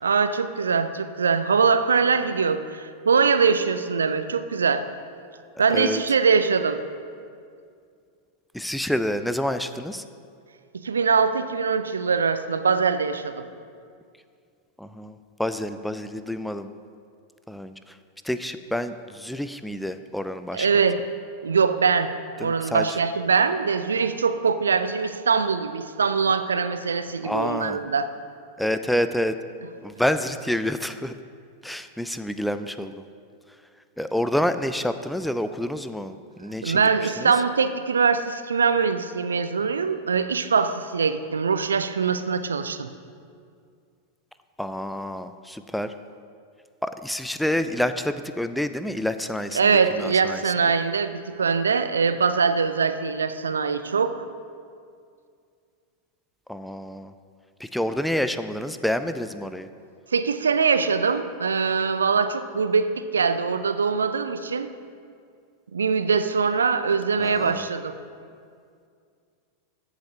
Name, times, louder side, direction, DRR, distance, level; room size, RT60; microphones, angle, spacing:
voice 1, 0.0-4.8 5.6-6.8 10.7-13.4 20.5-21.0 21.4-22.1 22.4-28.1 36.6-42.9 49.5-54.2 60.1-64.7 65.7-68.0, right 5 dB, 70° right, 11 dB, 0.4 m, -22 dB
voice 2, 5.7-6.0 8.5-10.0 14.8-16.7 17.5-18.0 18.2-20.7 22.4-22.9 27.2-27.8 28.6-29.3 29.8-31.2 31.6-33.0 34.0-36.9 37.2-37.3 44.6-45.9 46.8-50.5 56.5-57.1 57.6-59.7 67.2-67.7, left 1 dB, ahead, 10 dB, 0.4 m, -28 dB
14.0 x 8.1 x 2.8 m, 2.3 s
figure-of-eight pair, 90°, 0 cm